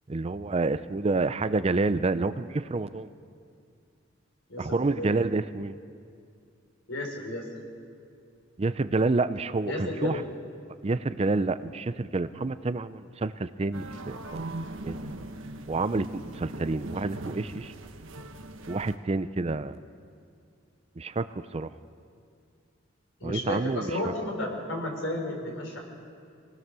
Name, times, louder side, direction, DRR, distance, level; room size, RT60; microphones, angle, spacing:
voice 1, 0.1-3.1 4.6-5.7 8.6-10.2 10.8-15.0 15.7-17.7 18.7-19.8 21.0-21.7 23.2-24.1, right 3 dB, 30° right, 13 dB, 0.5 m, -28 dB
voice 2, 4.5-5.3 6.9-7.4 9.7-10.2 23.2-25.8, left 1 dB, 80° left, 0 dB, 5.0 m, -33 dB
sound 1, 13.7-19.0, right 1 dB, 80° right, 1.3 m, -39 dB
25.5 x 19.0 x 6.9 m, 2.4 s
head